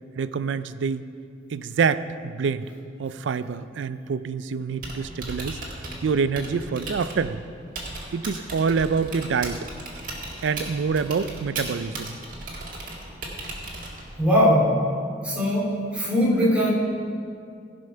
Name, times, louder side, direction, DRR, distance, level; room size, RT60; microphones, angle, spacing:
voice 1, 0.2-1.1 1.5-2.7 3.0-5.6 6.0-7.4 8.1-9.7 10.4-12.2, right 5 dB, 90° right, 14 dB, 0.4 m, -26 dB
Typing, 4.7-14.3, right 2 dB, 50° right, 1.8 m, -37 dB
voice 2, 14.2-14.7 15.2-16.8, equal, 5° right, -7 dB, 2.5 m, -20 dB
15.5 x 5.3 x 5.6 m, 2.3 s
head